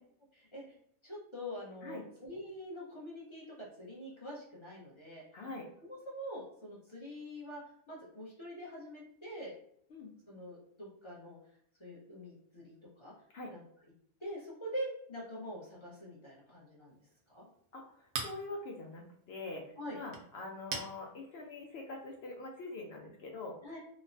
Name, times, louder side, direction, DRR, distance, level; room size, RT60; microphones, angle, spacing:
voice 1, 0.3-0.7 1.0-5.4 5.8-9.5 10.3-11.4 11.8-13.1 13.5-13.6 14.2-17.0 17.3-17.4 19.8-20.0 23.6-23.8, equal, 25° left, -6 dB, 0.6 m, -45 dB
voice 2, 5.3-5.7 9.9-10.1 13.3-13.5 17.7-17.8 18.2-19.6 19.9-23.5, left 2 dB, 65° left, 1 dB, 0.6 m, -44 dB
Chink clink, 16.9-22.4, right 5 dB, 80° right, 1.1 m, -46 dB
3.0 x 2.1 x 2.5 m, 0.71 s
omnidirectional pair, 1.6 m